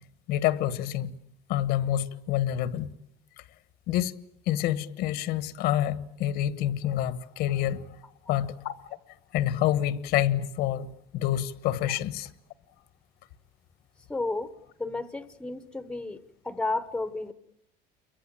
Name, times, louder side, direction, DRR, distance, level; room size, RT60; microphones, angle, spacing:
voice 1, 0.3-1.1 1.5-2.9 3.4-3.5 3.9-4.2 4.5-7.8 8.3-8.9 9.3-10.9 11.1-12.3, left 12 dB, 60° left, 1.4 m, -27 dB
voice 2, 14.1-14.5 14.8-17.3, left 2 dB, 5° left, 1.1 m, -32 dB
29.0 x 23.5 x 8.9 m
cardioid pair, 170°, 18 cm